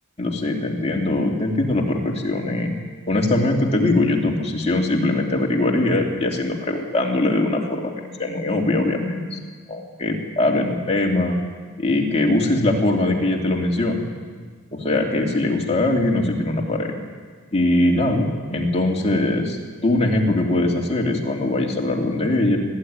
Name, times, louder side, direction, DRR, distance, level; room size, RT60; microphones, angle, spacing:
voice 1, 0.2-2.7 3.1-9.4 9.7-11.4 11.8-14.0 14.7-16.9 17.5-19.6 19.8-22.6, left 2 dB, 30° left, 0 dB, 2.8 m, -21 dB
21.0 x 13.5 x 9.6 m, 1.5 s
head